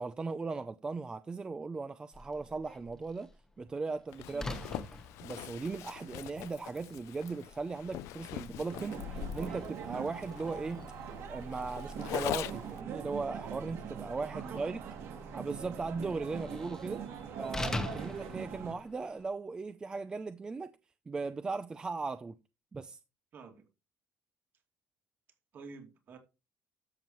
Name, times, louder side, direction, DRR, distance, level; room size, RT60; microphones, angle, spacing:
voice 1, 0.0-3.3 3.6-4.6 5.2-10.8 11.3-14.8 15.3-17.0 17.4-20.7 21.1-22.4 22.7-23.0, right 4 dB, 15° right, 0.4 m, -38 dB
Slam, 2.1-19.3, left 2 dB, 10° left, 1.1 m, -47 dB
Zipper (clothing), 4.1-12.8, left 14 dB, 75° left, 0.5 m, -42 dB
voice 2, 4.3-4.9 14.3-14.9 23.3-23.6 25.5-26.2, right 5 dB, 45° right, 2.5 m, -49 dB
sound 1, 8.7-18.7, right 7 dB, 60° right, 2.6 m, -42 dB
13.0 x 6.9 x 3.1 m
cardioid pair, 160°, 5 cm